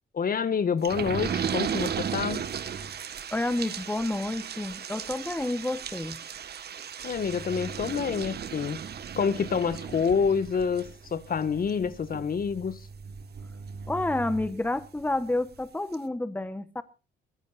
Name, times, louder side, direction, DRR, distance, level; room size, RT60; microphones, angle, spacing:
voice 1, 0.1-2.4 7.0-8.8 9.2-10.8 11.1-12.8, left 6 dB, 45° left, 1.8 m, -27 dB
sound 1, 0.8-15.1 15.6-15.7 15.9-16.0, right 7 dB, 55° right, 1.7 m, -36 dB
voice 2, 3.3-6.2 13.9-16.8, left 2 dB, 10° left, 1.3 m, -29 dB
23.0 x 16.5 x 2.6 m
cardioid pair, 90°, 20 cm